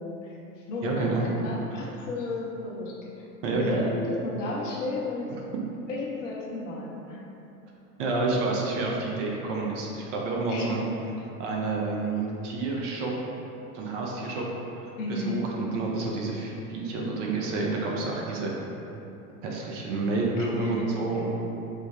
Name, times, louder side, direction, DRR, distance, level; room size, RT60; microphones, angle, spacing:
voice 1, 0.0-5.3 5.9-7.2 10.5-10.7 14.9-15.4 20.3-21.2, left 2 dB, 55° left, -3 dB, 0.7 m, -33 dB
voice 2, 0.8-1.2 3.4-3.8 8.0-10.8 11.4-13.1 13.7-14.5 15.1-18.5 19.4-21.3, right 3 dB, 55° right, -2 dB, 0.6 m, -29 dB
3.2 x 2.1 x 3.3 m, 2.9 s
figure-of-eight pair, 85°, 44 cm